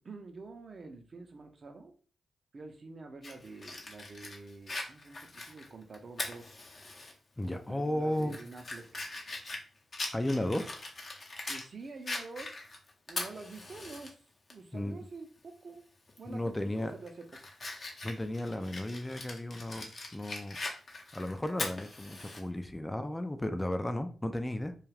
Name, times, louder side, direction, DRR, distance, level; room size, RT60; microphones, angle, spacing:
voice 1, 0.0-1.9 2.5-6.7 7.4-9.0 11.5-12.6 13.1-14.2 14.5-15.8 16.2-16.5 16.9-17.5, right 3 dB, 55° right, 0.6 m, -47 dB
Fire, 3.2-7.1 7.5-7.6 8.1-11.7 12.1-14.1 14.5-14.6 16.1-16.3 16.8-22.4, left 2 dB, 50° left, 0.7 m, -41 dB
voice 2, 7.4-8.5 10.1-10.9 14.7-15.0 16.3-16.9 18.0-20.6 21.1-24.8, left 1 dB, 15° left, 0.4 m, -34 dB
2.3 x 2.3 x 3.3 m
supercardioid pair, 40°, 0 cm